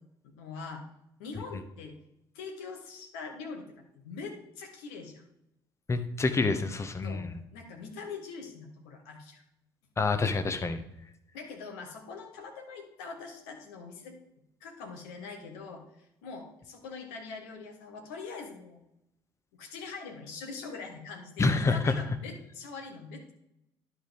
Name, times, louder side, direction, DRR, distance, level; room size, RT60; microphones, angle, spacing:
voice 1, 0.2-0.8 1.2-2.0 2.3-5.2 7.0-9.4 11.3-14.2 14.6-18.8 19.5-23.3, left 4 dB, 65° left, 2 dB, 1.5 m, -43 dB
voice 2, 5.9-7.4 10.0-10.8 21.4-21.9, left 3 dB, 20° left, 9 dB, 0.8 m, -27 dB
11.5 x 4.8 x 3.6 m, 0.83 s
figure-of-eight pair, 50°, 12 cm